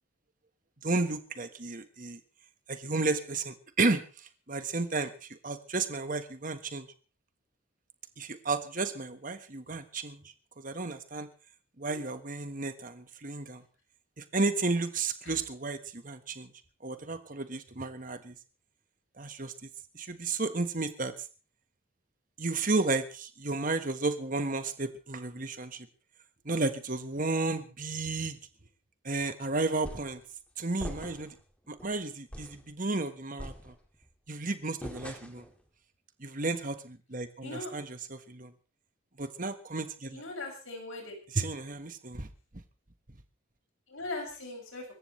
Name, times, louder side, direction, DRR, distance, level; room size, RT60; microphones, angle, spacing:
voice 1, 0.8-2.2 2.7-4.0 4.5-6.9 8.2-10.2 10.6-11.3 11.8-13.6 14.2-16.5 16.8-18.3 19.2-19.7 19.9-21.1 22.4-25.9 26.4-28.4 29.0-30.2 30.6-31.3 31.7-33.7 34.3-35.4 36.2-38.5 39.2-40.2 41.3-42.3, right 3 dB, 40° right, 9 dB, 1.4 m, -33 dB
sound 1, 29.8-30.2 30.8-31.4 31.8-31.9 32.3-32.7 33.4-34.1 34.8-35.5, equal, 5° left, 2.1 m, -42 dB
voice 2, 37.4-37.7 40.1-41.1 43.9-44.9, left 2 dB, 85° left, 1 dB, 6.8 m, -39 dB
25.0 x 14.0 x 3.3 m, 0.36 s
head